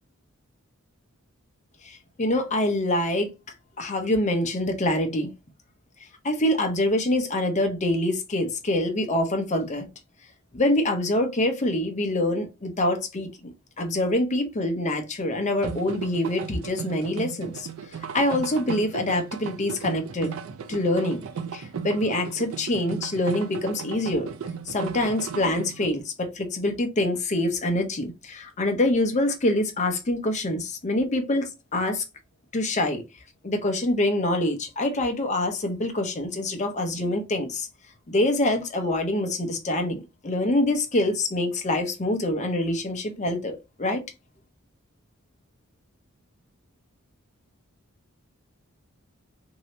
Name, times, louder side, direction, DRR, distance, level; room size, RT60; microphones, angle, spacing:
voice 1, 1.8-3.3 3.8-5.3 6.2-9.9 10.5-13.5 13.8-17.7 18.1-20.3 20.7-21.2 21.5-24.3 24.7-32.0 32.5-33.0 33.4-37.7 38.1-44.0, left 1 dB, 35° left, 0.7 m, -25 dB
sound 1, 15.6-25.9, right 6 dB, 70° right, 0.4 m, -36 dB
3.2 x 2.7 x 2.8 m
head